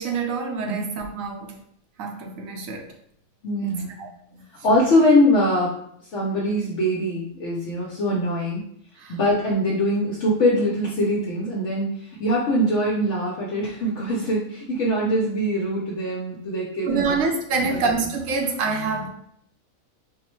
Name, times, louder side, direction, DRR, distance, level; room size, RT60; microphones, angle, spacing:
voice 1, 0.0-1.6 2.0-2.9 3.6-3.7 4.0-4.4 9.0-9.2 16.8-19.1, right 4 dB, 75° right, 1.1 m, -26 dB
voice 2, 3.4-3.9 4.6-5.8 6.1-8.6 9.1-17.2 17.7-17.8, equal, 65° left, 1.0 m, -22 dB
3.9 x 2.1 x 4.4 m
omnidirectional pair, 1.4 m